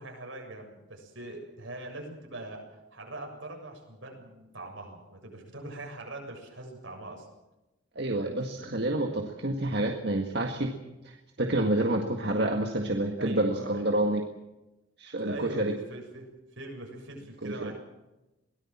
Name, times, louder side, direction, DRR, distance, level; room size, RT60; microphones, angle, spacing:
voice 1, 0.0-2.6 2.9-7.3 8.2-8.5 13.2-14.0 15.2-16.3 16.6-17.8, right 1 dB, 80° right, 2 dB, 7.2 m, -42 dB
voice 2, 8.0-10.7 11.0-14.2 15.0-15.7 17.4-17.7, right 1 dB, 55° right, 3 dB, 1.9 m, -28 dB
23.0 x 18.0 x 7.4 m, 1.0 s
head